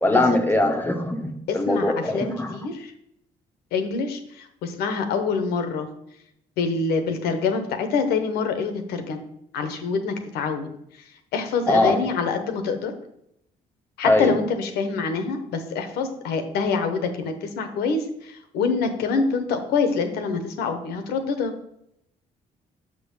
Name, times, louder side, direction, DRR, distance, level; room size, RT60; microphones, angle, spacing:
voice 1, 0.0-2.6 11.7-12.0 14.0-14.4, left 1 dB, 10° left, 4 dB, 0.7 m, -21 dB
voice 2, 1.5-2.9 3.7-5.9 6.6-9.2 9.5-10.7 11.3-12.9 14.0-21.5, left 4 dB, 85° left, 7 dB, 0.9 m, -26 dB
6.8 x 3.8 x 5.3 m, 0.77 s
supercardioid pair, 70°, 16 cm